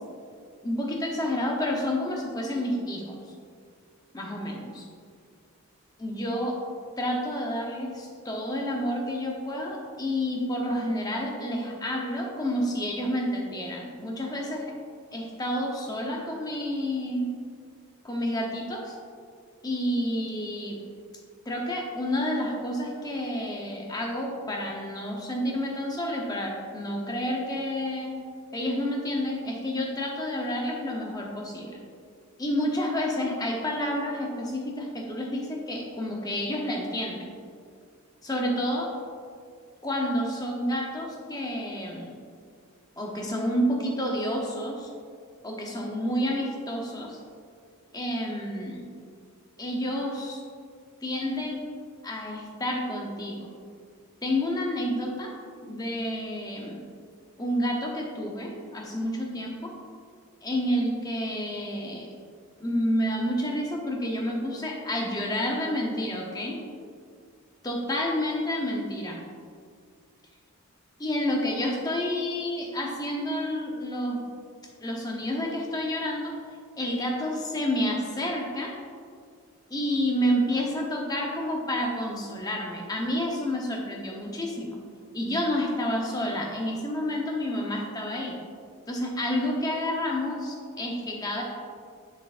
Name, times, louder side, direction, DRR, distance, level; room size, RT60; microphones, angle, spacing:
voice 1, 0.6-3.2 4.1-4.8 6.0-6.6 7.0-14.6 15.1-17.3 18.0-19.0 19.6-20.8 21.5-28.2 28.5-31.7 32.4-37.3 38.2-38.9 39.8-42.2 43.0-44.9 45.4-47.2 47.9-48.8 49.6-50.4 51.0-51.6 52.0-53.5 54.2-55.3 55.6-56.8 57.4-59.7 60.4-62.1 62.6-66.6 67.6-69.2 71.0-74.2 74.8-76.3 76.8-78.7 79.7-84.8 85.1-88.3 88.9-91.4, left 1 dB, 15° left, -1 dB, 0.8 m, -29 dB
7.0 x 6.5 x 2.5 m, 2.1 s
head